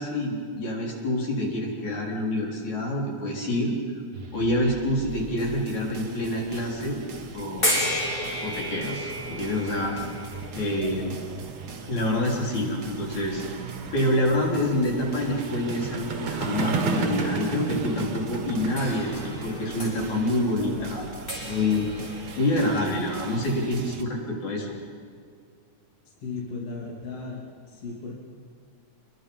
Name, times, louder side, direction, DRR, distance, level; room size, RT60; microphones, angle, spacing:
voice 1, 0.0-3.8 4.3-7.0 7.3-7.9 8.4-10.0 10.5-11.1 11.8-13.4 13.9-21.0 21.4-24.8, left 1 dB, 75° left, -2 dB, 5.3 m, -27 dB
sound 1, 4.1-24.0, right 4 dB, 45° right, 1.5 m, -42 dB
sound 2, 7.6-12.7 13.5-13.6 18.8-23.1, equal, 15° left, 5.3 m, -33 dB
sound 3, 8.9-22.7, right 5 dB, 65° right, 2.9 m, -35 dB
voice 2, 26.2-28.2, left 4 dB, 55° left, -3 dB, 3.9 m, -36 dB
27.5 x 22.5 x 5.6 m, 2.2 s
omnidirectional pair, 3.4 m